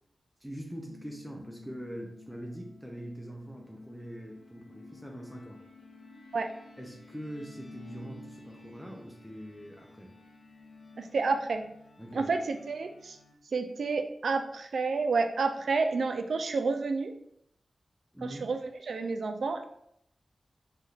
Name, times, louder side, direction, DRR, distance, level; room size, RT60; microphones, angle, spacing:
voice 1, 0.4-5.6 6.8-10.1 12.0-12.3 18.1-18.5, equal, ahead, 0 dB, 0.4 m, -43 dB
sound 1, 0.9-13.3, left 3 dB, 90° left, 0.5 m, -52 dB
voice 2, 11.0-11.6 12.1-13.2 13.5-17.1 18.2-19.7, right 4 dB, 80° right, 7 dB, 0.3 m, -30 dB
3.5 x 2.7 x 2.3 m, 0.72 s
wide cardioid pair, 90°, 0 cm